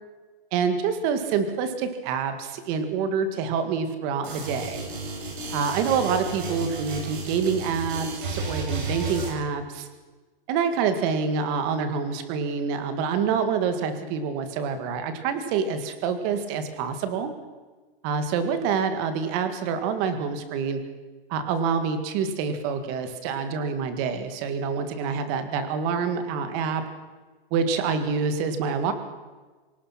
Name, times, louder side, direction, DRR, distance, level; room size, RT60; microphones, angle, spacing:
voice 1, 0.5-4.9 5.5-9.9 10.5-17.3 18.0-20.8 21.3-26.8 27.5-28.9, right 6 dB, 25° right, 9 dB, 1.9 m, -26 dB
sound 1, 4.2-9.3, right 3 dB, 60° right, 7.9 m, -33 dB
26.5 x 18.5 x 5.9 m, 1.3 s
hypercardioid pair, 165°, 29 cm